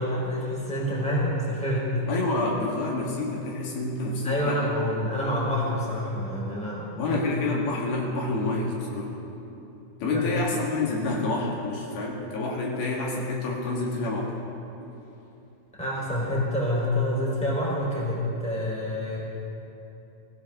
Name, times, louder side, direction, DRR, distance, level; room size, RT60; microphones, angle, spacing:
voice 1, 0.0-1.9 4.2-7.2 10.1-10.4 15.8-19.2, left 1 dB, ahead, -5 dB, 3.7 m, -27 dB
voice 2, 2.1-4.6 7.0-9.1 10.0-14.3, left 2 dB, 75° left, -2 dB, 3.7 m, -28 dB
23.5 x 16.0 x 3.7 m, 2.9 s
omnidirectional pair, 4.4 m